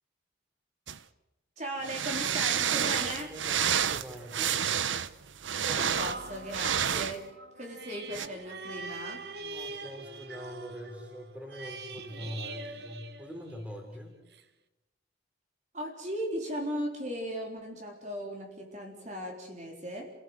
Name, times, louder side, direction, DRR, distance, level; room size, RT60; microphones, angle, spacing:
sound 1, 0.9-1.0 1.8-7.2 8.1-8.3, right 8 dB, 85° right, 0.9 m, -29 dB
voice 1, 1.6-3.3 5.6-7.3 7.6-9.2 15.7-20.1, equal, 40° right, 2 dB, 3.9 m, -37 dB
voice 2, 2.7-4.7 9.4-14.2, equal, 5° right, 2 dB, 3.8 m, -43 dB
sound 2, 6.0-13.8 14.3-14.4, right 3 dB, 60° right, 1.3 m, -43 dB
29.5 x 17.0 x 8.0 m, 1.0 s
head